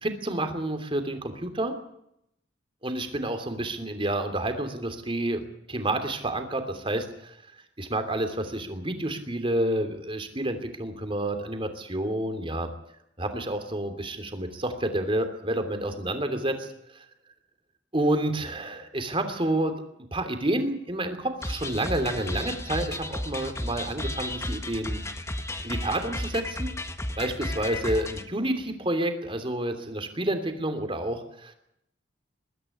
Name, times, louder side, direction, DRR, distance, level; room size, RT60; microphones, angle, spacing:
voice 1, 0.0-1.7 2.8-5.4 5.7-7.4 7.8-12.7 13.2-16.7 16.9-17.0 17.9-19.8 20.1-25.0 25.6-26.7 27.2-31.5, right 1 dB, 30° right, 8 dB, 3.0 m, -29 dB
sound 1, 21.4-28.3, left 1 dB, 15° left, 1.4 m, -33 dB
22.0 x 13.5 x 9.9 m, 0.77 s
head